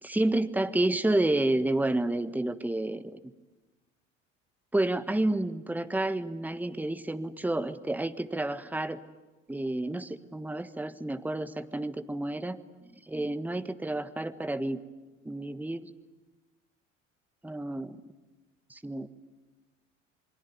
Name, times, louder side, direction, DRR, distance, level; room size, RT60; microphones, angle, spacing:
voice 1, 0.0-3.3 4.7-9.0 9.5-12.6 13.1-14.8 15.2-15.9 17.4-18.0 18.7-19.1, right 1 dB, 5° right, 11 dB, 1.4 m, -30 dB
27.5 x 23.0 x 9.4 m, 1.2 s
figure-of-eight pair, 65°, 38 cm